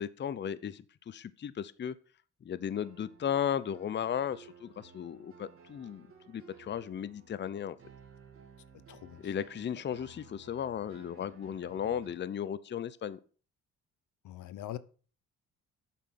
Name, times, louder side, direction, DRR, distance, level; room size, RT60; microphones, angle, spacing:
voice 1, 0.0-1.9 2.4-7.8 9.2-13.2, left 9 dB, 35° left, 0.6 m, -35 dB
sound 1, 2.7-12.1, right 4 dB, 45° right, 3.0 m, -56 dB
voice 2, 8.9-9.3 14.2-14.8, left 13 dB, 75° left, 0.8 m, -42 dB
8.4 x 7.6 x 5.7 m
cardioid pair, 90°, 30 cm